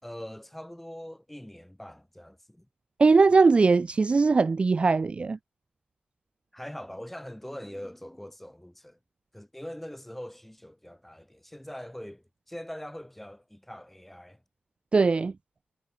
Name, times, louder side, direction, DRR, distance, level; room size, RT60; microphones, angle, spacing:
voice 1, 0.0-2.7 6.5-9.0 9.3-14.4, equal, 5° left, 4.6 m, -42 dB
voice 2, 3.0-5.4 14.9-15.3, right 4 dB, 35° right, 0.4 m, -20 dB
wide cardioid pair, 115°, 3 cm